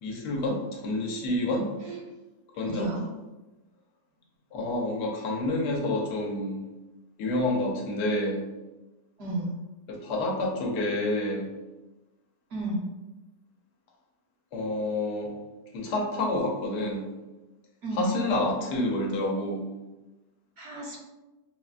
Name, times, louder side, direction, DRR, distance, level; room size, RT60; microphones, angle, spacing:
voice 1, 0.0-1.7 2.6-2.9 4.5-6.6 7.2-8.4 9.9-11.5 14.5-15.3 15.7-17.1 17.9-19.7, left 1 dB, 80° left, -1 dB, 1.3 m, -28 dB
voice 2, 2.6-3.0 9.2-9.6 12.5-12.9 17.8-18.1 20.6-21.0, right 2 dB, 55° right, -5 dB, 0.8 m, -32 dB
3.7 x 2.1 x 2.4 m, 1.1 s
omnidirectional pair, 1.8 m